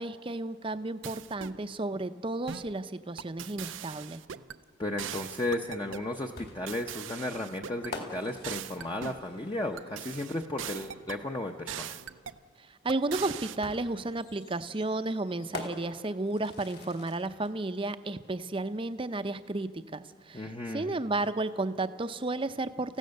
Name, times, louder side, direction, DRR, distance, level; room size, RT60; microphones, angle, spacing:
voice 1, 0.0-4.2 12.6-23.0, right 2 dB, 25° right, 11 dB, 0.6 m, -33 dB
sound 1, 1.0-1.6 2.5-2.8 3.2-4.6 5.0-6.1 6.7-7.9 8.4-9.3 9.8-11.2 11.7-12.4 12.9-13.6, right 9 dB, 75° right, 0.6 m, -41 dB
voice 2, 4.8-12.0 20.3-20.9, left 1 dB, 20° left, 2 dB, 0.7 m, -34 dB
sound 2, 6.4-10.0 11.5-11.6 13.6-17.5, left 2 dB, 55° left, 2.3 m, -45 dB
27.5 x 15.5 x 6.5 m, 2.1 s
head